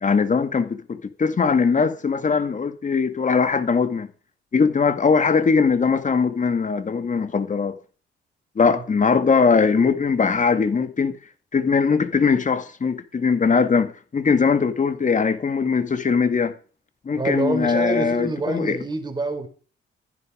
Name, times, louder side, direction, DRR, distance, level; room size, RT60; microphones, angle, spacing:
voice 1, 0.0-4.1 4.5-7.8 8.6-11.1 11.5-16.5 17.1-18.8, left 5 dB, 35° left, 2.1 m, -20 dB
voice 2, 17.1-19.5, right 2 dB, 20° right, 4.3 m, -26 dB
14.0 x 11.0 x 5.1 m
cardioid pair, 80°, 21 cm